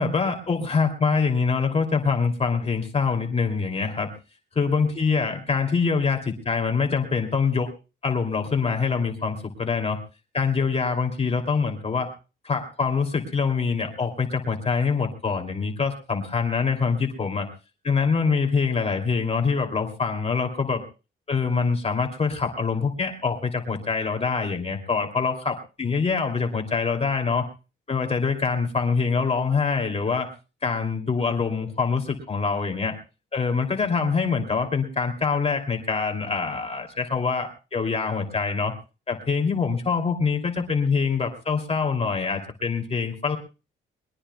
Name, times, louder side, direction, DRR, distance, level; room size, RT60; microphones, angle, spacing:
voice 1, 0.0-4.1 4.6-7.7 8.0-10.0 10.3-12.1 12.4-17.5 17.8-20.8 21.3-27.4 27.9-30.3 30.6-32.9 33.3-38.7 39.1-43.4, left 5 dB, 30° left, 3 dB, 2.7 m, -24 dB
22.0 x 21.0 x 2.3 m, 0.34 s
cardioid pair, 90°, 20 cm